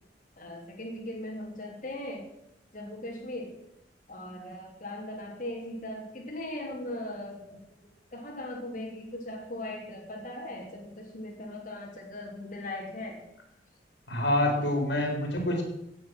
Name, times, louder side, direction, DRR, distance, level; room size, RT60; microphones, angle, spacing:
voice 1, 0.4-2.3 2.7-3.6 4.1-7.6 8.1-13.2, left 1 dB, 45° left, -3 dB, 3.3 m, -39 dB
voice 2, 14.1-15.6, left 1 dB, 70° left, 2 dB, 3.9 m, -26 dB
17.5 x 9.1 x 6.3 m, 0.81 s
head